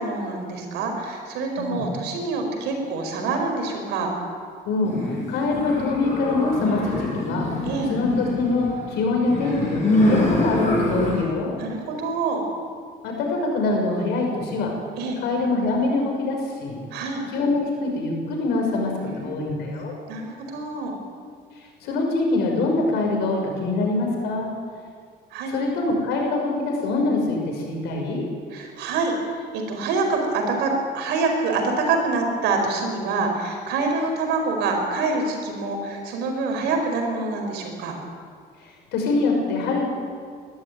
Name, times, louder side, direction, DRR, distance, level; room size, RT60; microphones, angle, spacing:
voice 1, 0.0-4.1 7.7-7.9 10.3-10.5 11.6-12.4 15.0-15.2 16.9-17.2 19.0-20.9 25.3-25.5 28.5-29.2 29.5-38.0, right 3 dB, 85° right, 3 dB, 4.9 m, -26 dB
voice 2, 4.7-5.0 5.3-7.5 7.9-11.5 13.0-14.7 15.2-16.8 17.3-19.9 21.8-24.5 25.5-28.2 38.6-39.8, left 3 dB, 85° left, 1 dB, 6.1 m, -24 dB
sound 1, 4.8-11.2, left 2 dB, 40° left, 7.8 m, -25 dB
22.0 x 13.5 x 9.2 m, 2.1 s
cardioid pair, 110°, 17 cm